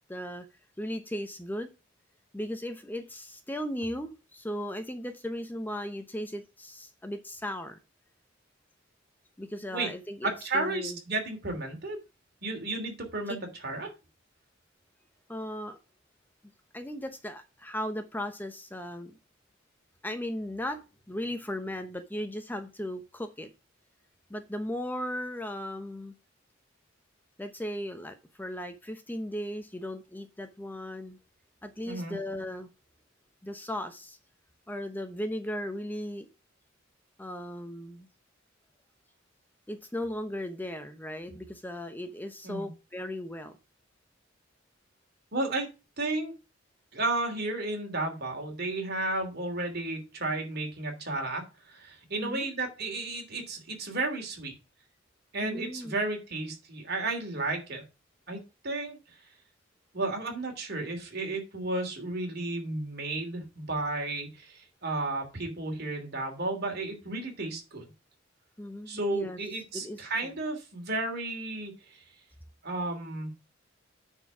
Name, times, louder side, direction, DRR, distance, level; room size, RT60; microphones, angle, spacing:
voice 1, 0.1-0.4 0.8-1.7 2.3-7.8 9.4-11.0 13.3-13.4 15.3-15.8 16.7-19.2 20.0-20.8 21.1-23.5 24.3-26.1 27.4-31.2 31.6-32.7 33.4-34.2 34.7-36.3 37.2-38.1 39.7-43.6 52.1-52.5 55.4-56.0 68.6-69.4 69.7-70.3, left 1 dB, 10° left, 0.8 m, -37 dB
voice 2, 10.2-12.0 12.4-13.9 31.9-32.2 42.4-42.7 45.3-45.7 46.0-46.3 46.9-54.5 55.3-57.8 58.3-59.0 59.9-67.8 68.9-72.0 72.6-73.3, right 2 dB, 55° right, 3.0 m, -33 dB
9.6 x 4.6 x 5.9 m
head